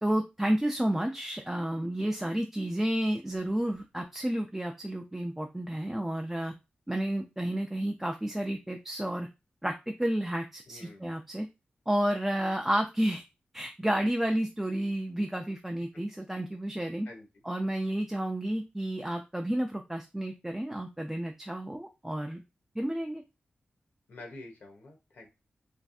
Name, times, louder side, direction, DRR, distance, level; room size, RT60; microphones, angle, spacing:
voice 1, 0.0-6.5 6.9-9.3 9.6-11.5 11.9-13.2 13.5-17.1 17.4-22.4 22.8-23.2, right 1 dB, 10° right, 2 dB, 0.3 m, -31 dB
voice 2, 10.7-11.1 15.9-16.0 17.1-17.3 24.1-25.3, left 2 dB, 70° left, 1 dB, 1.0 m, -48 dB
3.4 x 2.5 x 2.4 m, 0.25 s
wide cardioid pair, 125°, 3 cm